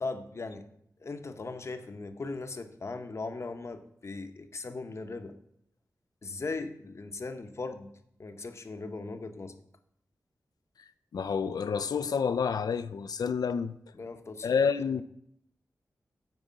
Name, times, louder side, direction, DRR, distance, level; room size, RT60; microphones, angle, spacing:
voice 1, 0.0-0.7 1.0-5.4 6.2-9.5 13.9-14.5, left 3 dB, 45° left, 0.8 m, -38 dB
voice 2, 11.1-13.7 14.4-15.0, left 6 dB, 85° left, 0.4 m, -28 dB
9.2 x 4.8 x 7.4 m
wide cardioid pair, 110°, 6 cm